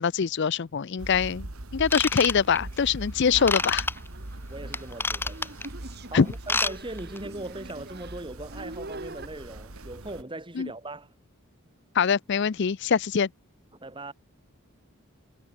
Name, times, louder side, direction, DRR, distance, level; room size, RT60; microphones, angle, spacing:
voice 1, 0.0-1.5 1.7-3.9 6.1-6.3 10.6-10.7 11.9-13.3, left 6 dB, 55° left, 0.5 m, -24 dB
sound 1, 1.0-10.2, right 1 dB, 80° right, 2.3 m, -41 dB
Ratchet pawl / Tools, 1.8-2.8 3.5-3.9 4.7-5.7 6.3-6.7 7.0-7.2 7.7-7.8, left 3 dB, 10° left, 0.6 m, -27 dB
sound 2, 3.2-9.3, right 2 dB, 50° right, 3.8 m, -44 dB
voice 2, 4.5-5.6 6.1-11.1 13.8-14.1, right 2 dB, 25° right, 1.9 m, -39 dB
head